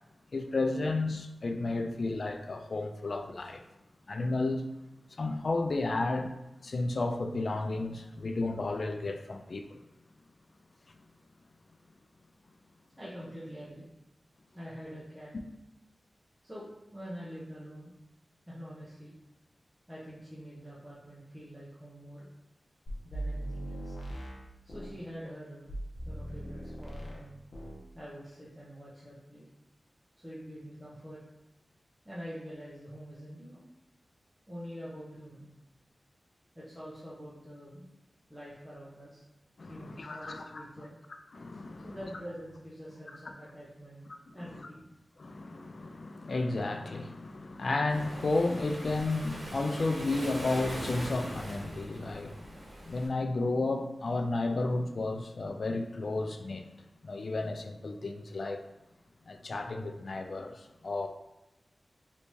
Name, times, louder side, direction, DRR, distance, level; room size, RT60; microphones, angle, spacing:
voice 1, 0.3-3.6 4.1-4.6 5.2-6.4 6.6-9.8 39.6-40.6 41.3-42.0 44.4-44.7 45.2-56.7 57.0-58.6 59.3-61.1, left 2 dB, 55° left, 5 dB, 0.3 m, -32 dB
voice 2, 13.0-13.9 14.5-15.3 16.4-17.9 18.5-19.1 19.9-22.3 23.0-24.0 24.6-25.7 26.0-27.4 27.9-29.5 30.2-31.2 32.0-33.7 34.5-35.5 36.5-37.9 38.3-39.2 39.7-40.9 41.8-44.0 44.3-44.8, equal, 5° right, -9 dB, 0.7 m, -45 dB
sound 1, 22.9-25.0 25.7-27.2 27.5-27.8, right 1 dB, 75° left, 0.7 m, -39 dB
Waves surf, 47.9-53.1, right 1 dB, 80° right, 0.9 m, -41 dB
3.3 x 2.7 x 3.0 m, 0.97 s
wide cardioid pair, 110°, 0 cm